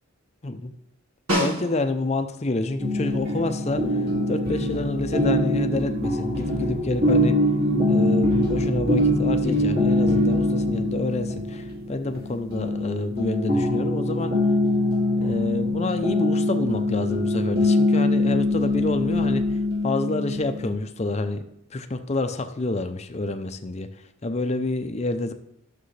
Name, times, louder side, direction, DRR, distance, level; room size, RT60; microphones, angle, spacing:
Snare drum, 1.3-2.2 6.7-6.8, equal, 85° right, 2.7 m, -26 dB
voice 1, 1.4-3.8 4.3-7.4 7.9-14.4 15.1-19.5 19.8-21.4 21.7-23.9 24.2-25.3, left 2 dB, 30° left, 8 dB, 0.5 m, -28 dB
sound 1, 2.8-20.7, left 1 dB, 45° right, 2.6 m, -23 dB
11.5 x 6.7 x 3.3 m, 0.77 s
head